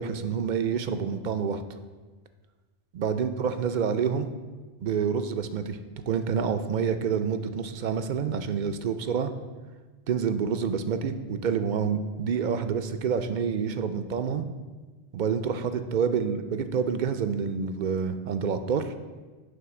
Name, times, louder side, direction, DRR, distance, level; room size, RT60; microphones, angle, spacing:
voice 1, 0.0-1.6 2.9-4.3 4.8-5.8 6.1-9.3 10.1-14.4 15.1-18.9, right 6 dB, 60° right, 9 dB, 0.6 m, -28 dB
9.3 x 3.4 x 5.9 m, 1.3 s
omnidirectional pair, 1.0 m